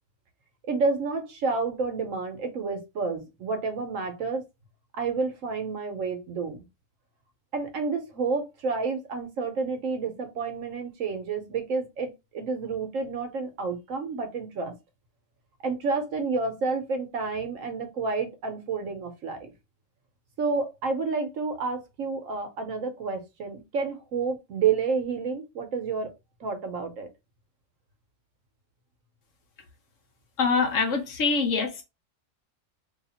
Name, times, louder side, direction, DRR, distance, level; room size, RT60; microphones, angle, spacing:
voice 1, 0.6-4.4 4.9-6.6 7.5-14.7 15.6-19.5 20.4-26.1 26.4-27.1, right 4 dB, 85° right, 1.3 m, -30 dB
voice 2, 30.4-31.8, left 4 dB, 80° left, 1.4 m, -24 dB
3.4 x 2.4 x 4.2 m
omnidirectional pair, 1.3 m